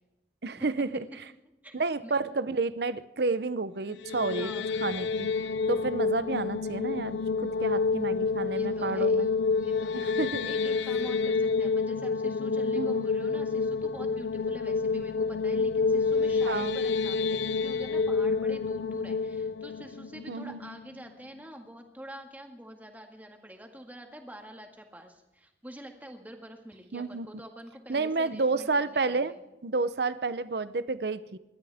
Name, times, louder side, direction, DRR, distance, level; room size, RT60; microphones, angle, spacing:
voice 1, 0.4-1.0 1.7-4.5 4.8-9.3 9.9-10.5 12.8-13.0 16.4-16.8 20.3-20.6 26.9-27.3 27.9-29.3 29.6-31.4, right 3 dB, 65° right, 14 dB, 0.7 m, -30 dB
voice 2, 1.6-2.1 4.4-4.8 7.5-7.8 8.5-10.1 10.4-29.4, equal, 10° right, 3 dB, 1.8 m, -46 dB
sound 1, 3.9-21.0, left 4 dB, 75° left, 0.5 m, -28 dB
28.5 x 12.5 x 3.5 m, 1.0 s
head